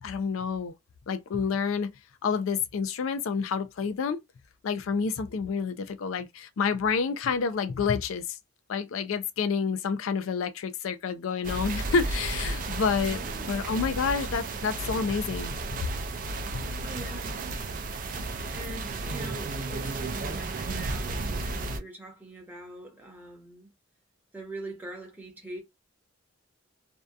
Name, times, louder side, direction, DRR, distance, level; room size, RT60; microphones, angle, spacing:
voice 1, 0.0-0.7 1.1-1.9 2.2-4.2 4.6-8.4 8.7-13.2 13.5-15.9 16.5-16.6, left 5 dB, 80° left, 0.4 m, -29 dB
sound 1, 11.4-21.8, right 2 dB, 40° right, 0.3 m, -33 dB
voice 2, 13.0-13.9 16.7-17.9 18.5-23.7 24.3-25.6, right 2 dB, 10° right, 0.8 m, -43 dB
2.6 x 2.2 x 2.3 m
head